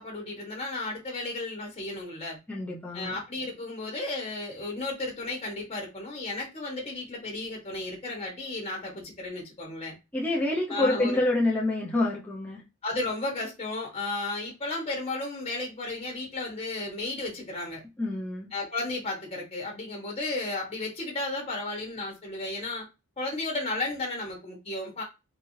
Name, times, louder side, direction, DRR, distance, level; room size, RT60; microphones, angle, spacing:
voice 1, 0.0-2.4 2.9-9.9 10.7-11.2 12.8-17.8 18.5-22.9 23.2-25.0, left 2 dB, 30° left, 1.4 m, -34 dB
voice 2, 2.5-3.1 10.1-12.6 18.0-18.5, left 2 dB, 10° left, 0.8 m, -27 dB
4.0 x 3.4 x 2.7 m
head